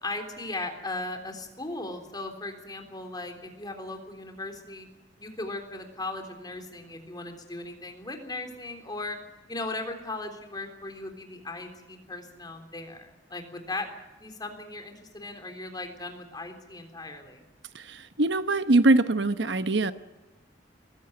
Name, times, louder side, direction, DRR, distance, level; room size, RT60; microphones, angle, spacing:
voice 1, 0.0-4.9 5.2-9.2 9.5-13.9 14.2-17.4, left 2 dB, 25° left, 5 dB, 3.6 m, -37 dB
voice 2, 17.7-19.9, right 2 dB, 75° right, 11 dB, 1.0 m, -23 dB
21.5 x 16.0 x 9.6 m, 1.1 s
head